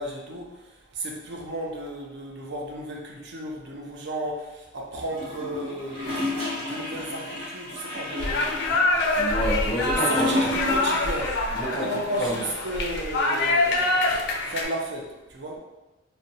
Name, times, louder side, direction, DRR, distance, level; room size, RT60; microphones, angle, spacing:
voice 1, 0.0-8.6 9.9-11.4 11.8-15.6, right 1 dB, 60° right, 0 dB, 0.5 m, -34 dB
Gurgling / Toilet flush, 5.1-11.2 11.4-11.5, left 1 dB, 80° right, 0.9 m, -31 dB
sound 1, 8.2-14.6, left 2 dB, 55° left, 0.3 m, -25 dB
voice 2, 9.2-10.5 11.5-11.9 12.2-12.3, equal, 20° left, -4 dB, 0.6 m, -28 dB
2.6 x 2.1 x 2.6 m, 1.0 s
head